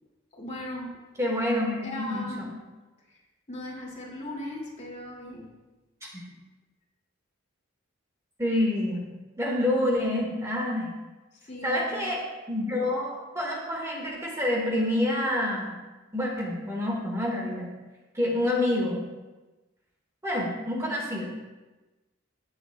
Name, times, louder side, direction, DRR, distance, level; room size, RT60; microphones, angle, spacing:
voice 1, 0.3-1.0 1.8-2.4 3.1-3.2 3.5-5.5 11.5-12.1, left 1 dB, 35° left, -3 dB, 2.3 m, -38 dB
voice 2, 1.2-2.5 6.0-6.2 8.4-9.1 9.4-10.9 11.6-15.7 16.1-17.7 18.1-19.0 20.2-21.3, left 1 dB, 15° right, -3 dB, 1.6 m, -27 dB
16.5 x 8.0 x 2.2 m, 1.2 s
head